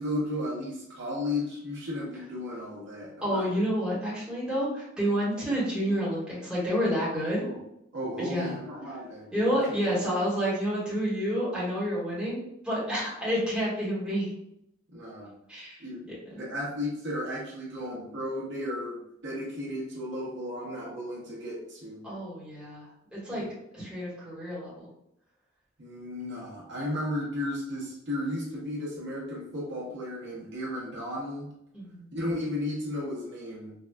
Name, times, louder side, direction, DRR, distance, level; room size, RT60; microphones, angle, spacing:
voice 1, 0.0-3.6 7.4-7.6 7.9-9.3 14.9-15.3 15.8-22.0 23.3-23.5 25.8-31.5 32.1-33.7, left 1 dB, 60° right, -5 dB, 1.1 m, -34 dB
voice 2, 3.2-7.5 8.2-8.6 9.3-12.4 12.6-14.3 15.5-16.5 22.0-23.4 23.7-24.8 31.7-32.1, equal, 5° right, -9 dB, 1.3 m, -29 dB
4.7 x 2.4 x 2.2 m, 0.79 s
head